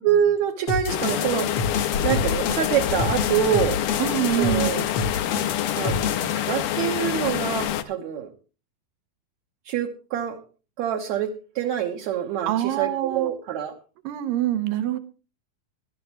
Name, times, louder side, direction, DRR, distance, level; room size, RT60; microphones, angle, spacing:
voice 1, 0.0-1.5 2.0-3.8 4.3-4.9 5.8-6.0 6.3-8.3 9.7-10.4 10.8-13.7, right 9 dB, 65° right, 1 dB, 2.3 m, -25 dB
sound 1, 0.7-6.3, left 4 dB, 55° left, 1.8 m, -29 dB
sound 2, 0.9-7.8, left 11 dB, 75° left, 2.5 m, -26 dB
voice 2, 4.0-4.7 12.5-13.3 14.0-15.0, right 13 dB, 80° right, 11 dB, 3.0 m, -25 dB
19.0 x 12.0 x 3.1 m, 0.33 s
omnidirectional pair, 4.0 m